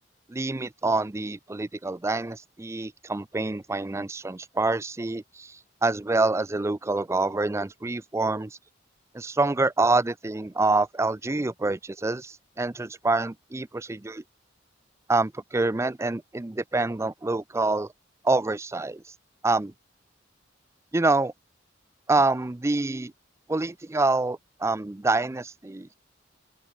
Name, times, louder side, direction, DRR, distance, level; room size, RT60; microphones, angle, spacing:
voice 1, 0.3-8.6 9.1-14.2 15.1-17.9 18.2-19.0 19.4-19.7 20.9-21.3 22.1-23.1 23.5-25.9, right 2 dB, 15° right, 0.4 m, -26 dB
open air
head